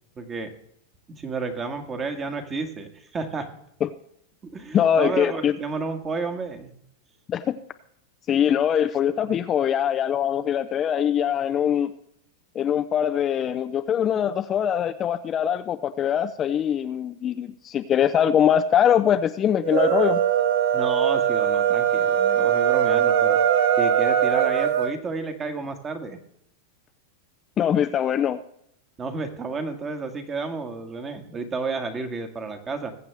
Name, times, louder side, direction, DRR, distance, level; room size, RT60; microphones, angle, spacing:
voice 1, 0.1-0.5 1.1-3.5 4.4-6.7 20.7-23.4 23.8-26.2 29.0-32.9, right 4 dB, 20° right, 7 dB, 1.7 m, -31 dB
voice 2, 4.7-5.5 7.3-7.6 8.3-11.9 12.5-20.2 27.6-28.4, left 9 dB, 30° left, 9 dB, 0.5 m, -22 dB
sound 1, 19.6-24.9, right 9 dB, 65° right, 1.0 m, -21 dB
21.0 x 7.7 x 3.4 m, 0.73 s
supercardioid pair, 135°, 0 cm